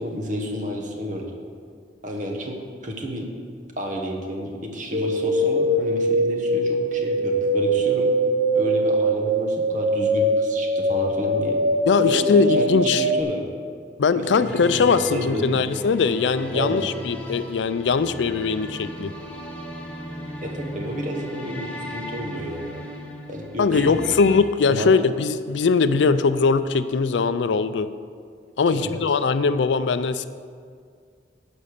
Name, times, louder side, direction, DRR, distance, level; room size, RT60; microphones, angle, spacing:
voice 1, 0.0-1.3 2.0-2.5 2.8-3.3 3.8-8.1 8.5-11.6 12.0-13.4 14.1-14.6 14.9-15.6 16.5-16.8 20.4-22.7 23.3-24.0 24.7-24.9 28.7-29.0, equal, 45° right, 1 dB, 1.3 m, -30 dB
sound 1, 4.9-13.2, right 1 dB, 65° right, 0.7 m, -22 dB
voice 2, 11.9-13.1 14.0-19.1 23.6-27.9 28.6-30.3, left 4 dB, 80° left, 13 dB, 0.4 m, -21 dB
sound 2, 14.3-24.4, equal, 5° left, 1.1 m, -36 dB
11.0 x 5.3 x 6.6 m, 2.1 s
head